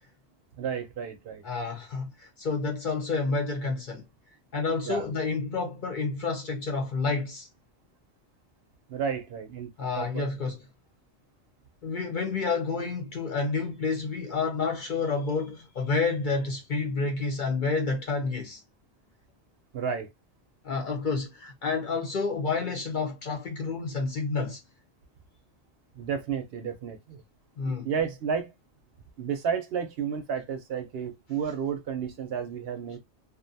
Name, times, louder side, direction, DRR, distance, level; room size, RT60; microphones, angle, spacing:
voice 1, 0.6-1.4 4.9-5.1 8.9-9.7 10.0-10.3 19.7-20.1 26.0-27.2 27.6-28.5 29.2-33.0, right 7 dB, 65° right, 0.7 m, -32 dB
voice 2, 1.4-4.0 4.5-7.5 9.8-10.6 11.8-18.6 20.6-24.6 27.6-27.9, left 4 dB, 50° left, 0.7 m, -29 dB
2.5 x 2.1 x 2.6 m
omnidirectional pair, 1.2 m